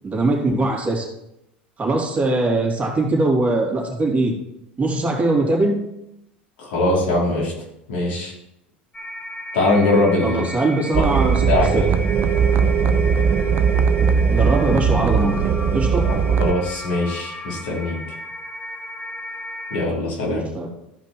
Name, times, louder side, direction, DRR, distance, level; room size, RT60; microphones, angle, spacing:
voice 1, 0.0-1.1 1.8-4.3 4.8-5.8 10.2-11.8 14.3-15.3 15.7-16.1 20.3-20.7, right 2 dB, 25° right, -1 dB, 3.2 m, -21 dB
voice 2, 6.6-7.5 7.9-8.3 9.5-10.4 11.5-11.8 16.0-18.0 19.7-20.4, left 2 dB, 75° left, -4 dB, 4.3 m, -21 dB
sound 1, 8.9-19.8, left 1 dB, 20° left, 2.2 m, -35 dB
sound 2, 10.9-16.5, right 6 dB, 45° right, 0.8 m, -19 dB
14.0 x 5.2 x 4.6 m, 0.83 s
hypercardioid pair, 85°, 6 cm